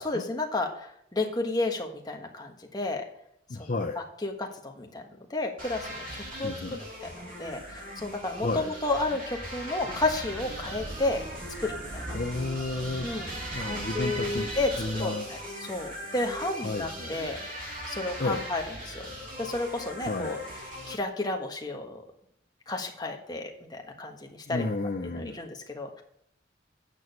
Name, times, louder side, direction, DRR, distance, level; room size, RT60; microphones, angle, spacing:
voice 1, 0.0-3.1 3.5-5.0 5.3-7.1 7.4-11.2 11.6-12.2 13.0-19.1 19.4-20.4 20.9-22.0 22.7-24.7 25.0-26.0, left 2 dB, 20° left, 2 dB, 1.3 m, -32 dB
voice 2, 3.5-4.0 6.4-6.8 8.4-8.7 12.1-13.1 13.5-14.5 14.8-15.3 16.6-17.3 18.2-18.5 20.0-20.4 24.5-25.4, left 2 dB, 45° left, 3 dB, 0.7 m, -32 dB
sound 1, 5.6-20.9, right 1 dB, 50° right, 2.5 m, -39 dB
sound 2, 9.8-15.0, right 1 dB, 85° right, 3.0 m, -41 dB
9.1 x 6.2 x 5.4 m, 0.73 s
head